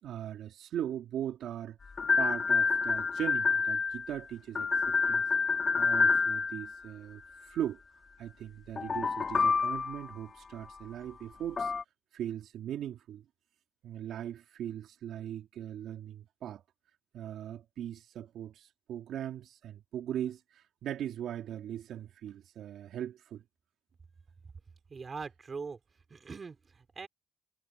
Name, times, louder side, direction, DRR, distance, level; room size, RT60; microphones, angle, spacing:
voice 1, 0.0-1.8 2.2-5.2 5.7-7.8 8.2-11.7 12.1-13.3 13.8-16.6 17.1-23.4, right 10 dB, 75° right, 2.9 m, -39 dB
sound 1, 2.0-4.2 4.5-6.9 8.8-10.1 11.6-11.8, left 5 dB, 40° left, 1.8 m, -28 dB
voice 2, 24.9-25.8 26.1-27.1, right 5 dB, 40° right, 4.1 m, -42 dB
cardioid pair, 75°, 0 cm